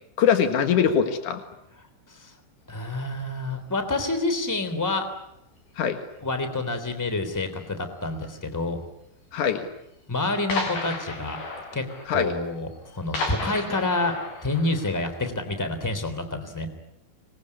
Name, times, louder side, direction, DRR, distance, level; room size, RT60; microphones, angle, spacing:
voice 1, 0.2-1.4 5.8-6.0 9.3-9.7 12.1-12.3, left 7 dB, 65° left, 7 dB, 2.0 m, -22 dB
voice 2, 2.7-5.1 6.2-8.8 10.1-11.4 11.7-12.7 13.0-16.7, left 2 dB, 5° left, 8 dB, 1.9 m, -28 dB
sound 1, 2.9-3.1 3.8-4.3 4.5-5.0 5.3-5.6 6.0-6.1 6.4-6.5 7.3-7.7 8.6-8.7 9.0-9.1 9.5-9.6 9.9-10.0 10.5-15.2, left 3 dB, 50° left, 6.3 m, -34 dB
26.5 x 21.5 x 9.8 m, 0.84 s
omnidirectional pair, 5.9 m